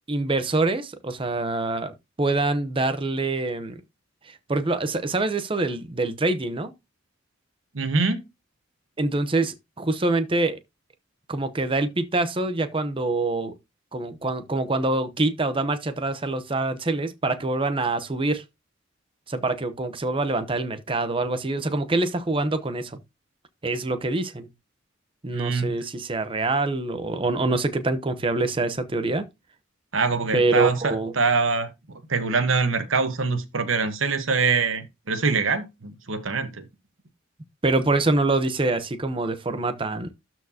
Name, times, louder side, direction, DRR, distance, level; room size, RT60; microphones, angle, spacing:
voice 1, 0.1-3.8 4.2-6.7 9.0-10.6 11.3-13.5 13.9-18.4 19.3-23.0 23.6-24.5 25.2-29.2 30.3-31.2 37.6-40.1, right 2 dB, 25° right, 0.8 m, -25 dB
voice 2, 7.7-8.2 25.3-25.7 29.9-36.6, right 4 dB, 90° right, 1.2 m, -24 dB
12.5 x 4.5 x 2.8 m
head